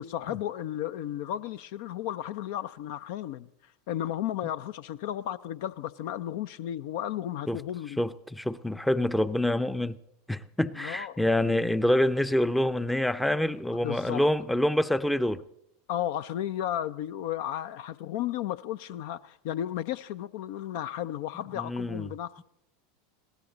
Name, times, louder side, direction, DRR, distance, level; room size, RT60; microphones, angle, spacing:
voice 1, 0.0-3.5 3.9-8.0 10.8-11.2 13.8-14.2 15.9-22.4, left 11 dB, 60° left, 0.5 m, -34 dB
voice 2, 8.0-10.0 10.3-15.4 21.5-22.1, left 1 dB, 5° left, 0.6 m, -26 dB
21.0 x 17.0 x 3.9 m
hypercardioid pair, 85°, 0 cm